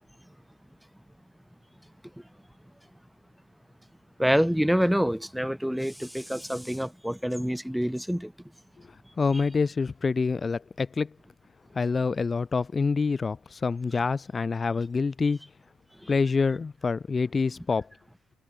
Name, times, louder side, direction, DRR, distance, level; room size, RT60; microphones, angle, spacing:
voice 1, 4.2-8.3 16.0-16.1, equal, ahead, 4.8 m, -26 dB
voice 2, 9.2-11.1 11.7-15.4 16.1-17.9, left 4 dB, 35° left, 3.6 m, -26 dB
supercardioid pair, 65°, 0 cm